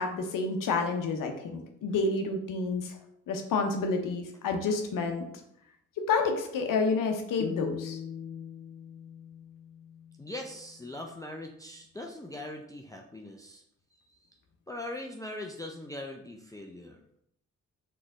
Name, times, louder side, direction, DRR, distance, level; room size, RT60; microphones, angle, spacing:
voice 1, 0.0-3.0 3.3-5.3 6.0-8.0, left 4 dB, 60° left, 4 dB, 0.8 m, -29 dB
sound 1, 7.4-10.5, left 7 dB, 25° left, 0.9 m, -41 dB
voice 2, 10.2-13.6 14.1-14.2 14.7-17.0, left 1 dB, 10° left, 1 dB, 0.6 m, -41 dB
3.9 x 3.2 x 3.8 m, 0.74 s
hypercardioid pair, 40°, 36 cm